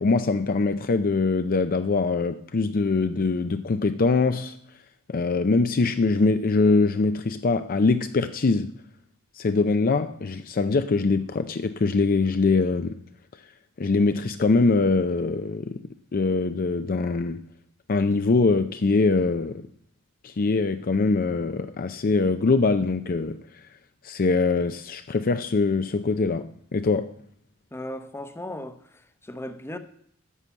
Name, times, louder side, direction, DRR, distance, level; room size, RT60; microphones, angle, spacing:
voice 1, 0.0-4.6 5.1-8.7 9.3-13.0 13.8-15.8 16.1-17.4 17.9-19.7 20.2-23.4 24.0-27.1, left 3 dB, 45° left, 0.5 m, -23 dB
voice 2, 27.7-29.8, left 1 dB, 10° left, 0.8 m, -37 dB
11.0 x 6.0 x 8.3 m
head